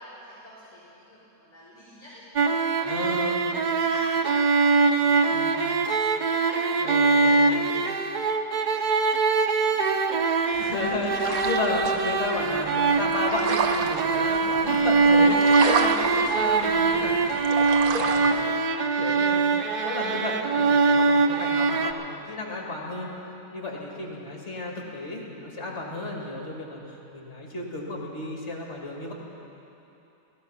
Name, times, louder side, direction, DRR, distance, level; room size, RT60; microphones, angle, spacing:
voice 1, 0.0-3.3 3.7-4.8 5.1-5.9 6.2-8.0 8.7-11.3, left 1 dB, 10° left, -14 dB, 4.4 m, -47 dB
sound 1, 2.4-21.9, right 4 dB, 60° right, 0.5 m, -23 dB
voice 2, 2.8-3.4 5.2-5.6 6.8-7.8 10.6-17.3 17.6-18.6 19.0-19.5 19.8-23.1 23.5-26.8 27.1-29.1, left 2 dB, 50° left, -1 dB, 2.6 m, -33 dB
sound 2, 10.5-18.4, right 5 dB, 75° right, 1.3 m, -31 dB
17.0 x 14.5 x 5.7 m, 3.0 s
omnidirectional pair, 1.5 m